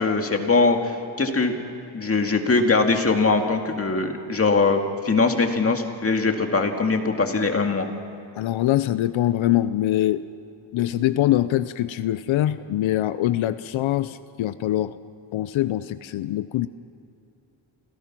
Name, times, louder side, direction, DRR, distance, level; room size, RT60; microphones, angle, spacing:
voice 1, 0.0-1.5 1.9-7.9, left 3 dB, 30° left, 4 dB, 2.2 m, -21 dB
voice 2, 8.4-10.2 10.7-15.0 15.3-16.7, left 13 dB, 80° left, 13 dB, 0.7 m, -23 dB
27.5 x 17.0 x 6.1 m, 2.8 s
cardioid pair, 120°, 46 cm